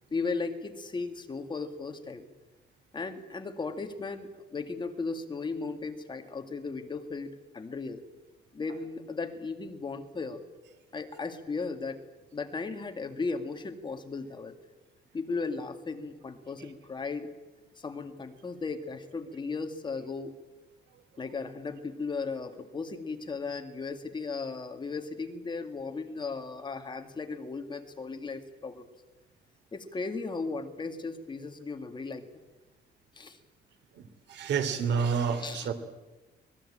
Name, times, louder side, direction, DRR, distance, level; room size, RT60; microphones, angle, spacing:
voice 1, 0.1-2.3 2.9-8.0 8.5-10.4 10.9-12.0 12.3-14.6 15.1-17.3 17.8-20.3 21.2-28.9 29.7-32.3 33.2-33.4 35.4-35.7, left 4 dB, 25° left, 6 dB, 2.1 m, -36 dB
voice 2, 34.3-35.7, right 6 dB, 75° right, 9 dB, 3.1 m, -28 dB
25.0 x 20.5 x 8.8 m, 1.2 s
cardioid pair, 155°, 18 cm